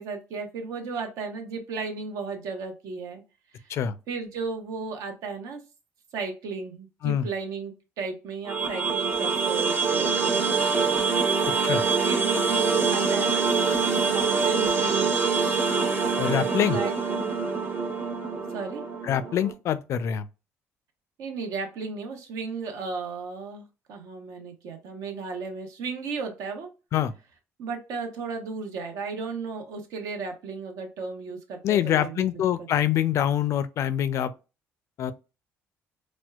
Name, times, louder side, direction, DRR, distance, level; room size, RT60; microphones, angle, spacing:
voice 1, 0.0-3.2 3.5-3.7 4.1-5.6 6.1-11.1 12.0-13.5 14.0-15.1 16.3-17.3 18.5-18.8 21.2-26.7 27.6-32.3 32.6-32.7, right 4 dB, 75° right, 0.9 m, -35 dB
sound 1, 8.4-19.5, right 5 dB, 35° right, 0.9 m, -25 dB
voice 2, 16.2-16.8 19.0-20.3 26.9-27.1 31.6-34.3 35.0-35.1, left 10 dB, 60° left, 0.4 m, -25 dB
4.3 x 2.1 x 2.3 m
cardioid pair, 115°, 6 cm